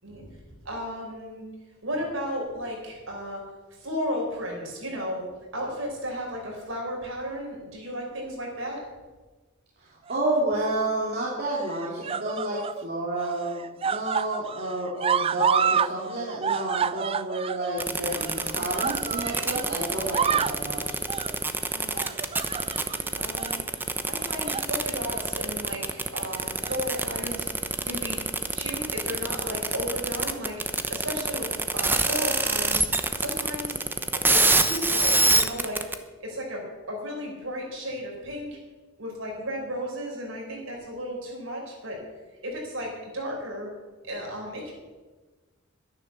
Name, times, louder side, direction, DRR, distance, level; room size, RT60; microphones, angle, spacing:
voice 1, 0.6-1.4 1.8-3.4 3.7-8.8 21.7-22.1 23.1-23.6 24.0-28.2 28.5-30.6 30.9-32.9 33.2-33.8 34.1-35.8 36.2-38.6 39.0-42.0 42.4-43.7 44.0-44.7, equal, 75° right, -1 dB, 5.6 m, -34 dB
voice 2, 9.8-21.0, right 2 dB, 50° right, -4 dB, 2.5 m, -30 dB
sound 1, 10.1-10.6 11.5-12.8 13.2-15.9 16.2-19.7 20.0-20.6 21.1-21.4 22.0-23.0 23.4-23.6 24.2-24.7 25.1-25.3 26.4-27.0 27.9-28.0, right 7 dB, 30° right, 0.3 m, -29 dB
sound 2, 17.8-35.9, right 3 dB, 10° right, 0.9 m, -25 dB
12.5 x 10.5 x 7.1 m, 1.3 s
head